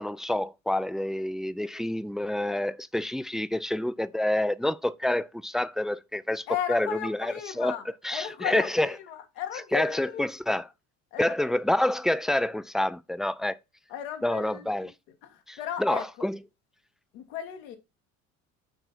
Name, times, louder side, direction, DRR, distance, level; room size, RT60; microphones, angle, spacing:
voice 1, 0.0-7.8 8.0-8.9 9.7-10.7 11.2-13.6 14.2-14.9 15.5-16.4, left 1 dB, ahead, 0.3 m, -28 dB
voice 2, 6.5-7.8 8.1-10.6 11.1-11.4 13.9-14.9 15.2-16.3 17.1-17.8, left 10 dB, 75° left, 1.7 m, -35 dB
9.0 x 4.4 x 4.1 m
hypercardioid pair, 65°, 41 cm